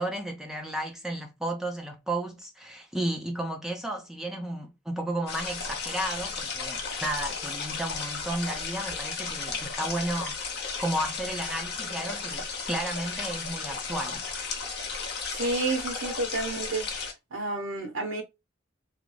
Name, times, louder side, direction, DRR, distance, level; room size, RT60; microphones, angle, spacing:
voice 1, 0.0-14.3, right 1 dB, 5° right, 0.6 m, -33 dB
sound 1, 5.3-17.1, left 5 dB, 55° left, 0.7 m, -34 dB
voice 2, 15.3-16.9 17.3-18.2, right 3 dB, 75° right, 0.9 m, -30 dB
2.5 x 2.2 x 3.1 m
head